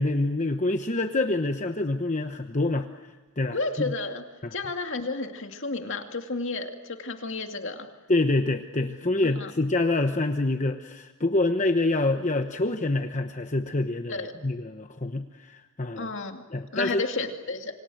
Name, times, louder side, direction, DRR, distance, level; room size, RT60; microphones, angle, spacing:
voice 1, 0.0-2.9 3.4-3.9 4.4-4.5 8.1-16.1 16.5-17.0, left 2 dB, 35° left, 6 dB, 1.0 m, -26 dB
voice 2, 3.5-4.2 4.5-7.9 9.2-9.5 14.1-14.3 16.0-16.4 16.7-17.7, left 3 dB, 60° left, 5 dB, 2.4 m, -32 dB
28.0 x 25.0 x 7.9 m, 1.3 s
head